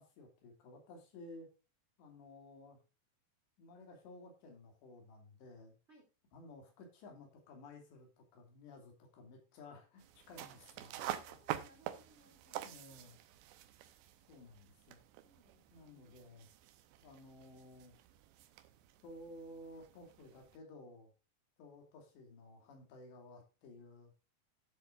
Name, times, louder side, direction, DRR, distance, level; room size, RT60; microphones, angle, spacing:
voice 1, 0.0-1.5 2.0-2.8 3.6-5.7 6.3-11.0 12.6-13.2 14.3-15.0 15.7-16.5 17.0-18.0 19.0-21.1 21.6-24.1, left 2 dB, 80° left, 3 dB, 4.9 m, -55 dB
sound 1, 10.0-20.6, right 13 dB, 85° right, 3.0 m, -48 dB
voice 2, 11.0-13.2 15.2-16.0, right 1 dB, 20° right, 1 dB, 2.5 m, -66 dB
13.0 x 7.6 x 2.5 m, 0.31 s
omnidirectional pair, 4.9 m